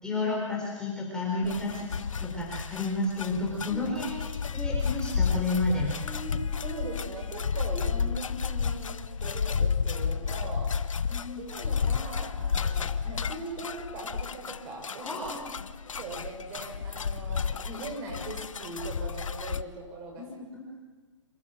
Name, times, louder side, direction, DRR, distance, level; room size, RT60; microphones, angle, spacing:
voice 1, 0.0-5.9 11.1-11.4 15.0-15.6 20.2-20.6, left 2 dB, 5° left, -5 dB, 4.5 m, -31 dB
sound 1, 1.4-19.6, left 6 dB, 85° left, 0.9 m, -31 dB
voice 2, 5.7-8.9 9.2-10.7 11.4-15.1 16.0-20.3, right 2 dB, 25° right, 1 dB, 6.5 m, -40 dB
26.5 x 13.5 x 9.2 m, 1.3 s
hypercardioid pair, 150°, 16 cm